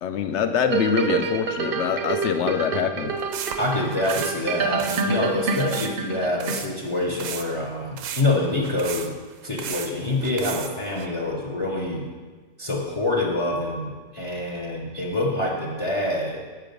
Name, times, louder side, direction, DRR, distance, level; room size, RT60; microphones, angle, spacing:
voice 1, 0.0-3.2, left 7 dB, 70° left, 8 dB, 0.9 m, -24 dB
sound 1, 0.7-7.0 7.5-7.6, right 4 dB, 60° right, 0.7 m, -27 dB
sound 2, 3.2-4.4 4.8-5.1 5.5-5.9 6.4-6.7 7.2-7.4 8.0-9.9 10.2-11.1, right 8 dB, 85° right, 1.0 m, -34 dB
voice 2, 3.6-9.2 9.4-12.1 12.6-16.4, left 2 dB, 30° left, -1 dB, 0.7 m, -26 dB
7.7 x 4.7 x 5.2 m, 1.4 s
omnidirectional pair, 1.3 m